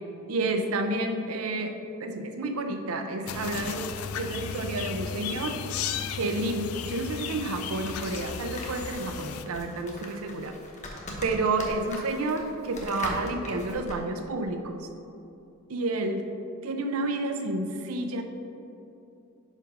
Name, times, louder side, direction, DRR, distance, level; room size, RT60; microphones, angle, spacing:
voice 1, 0.3-3.9 4.2-5.6 6.1-10.5 11.2-14.9 15.7-16.2 16.6-18.2, right 2 dB, 80° right, 6 dB, 0.5 m, -30 dB
sound 1, 3.3-9.4, left 7 dB, 90° left, 0.4 m, -35 dB
sound 2, 7.6-14.0, left 1 dB, 35° left, 1.0 m, -41 dB
5.3 x 5.1 x 5.1 m, 2.7 s
head